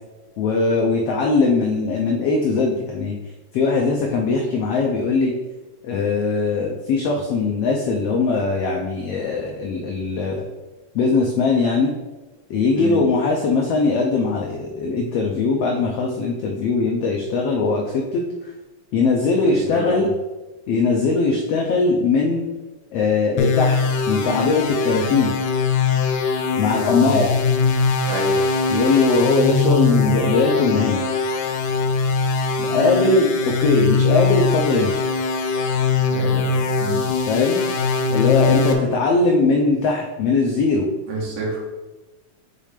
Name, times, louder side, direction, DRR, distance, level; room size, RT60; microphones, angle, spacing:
voice 1, 0.4-3.1 3.5-5.3 5.8-10.5 10.9-11.9 12.5-18.5 18.9-20.1 20.7-22.5 22.9-23.8 24.1-25.3 26.6-27.3 28.7-31.0 32.6-35.0 37.3-37.6 38.1-40.9, left 3 dB, 90° left, 0 dB, 1.3 m, -20 dB
voice 2, 19.4-20.1 26.9-27.2 28.1-28.3 36.1-36.4 36.8-37.0 41.1-41.6, right 3 dB, 75° right, -4 dB, 3.0 m, -28 dB
sound 1, 23.4-38.7, left 4 dB, 75° left, 1.7 m, -21 dB
6.8 x 3.2 x 5.0 m, 1.1 s
omnidirectional pair, 3.6 m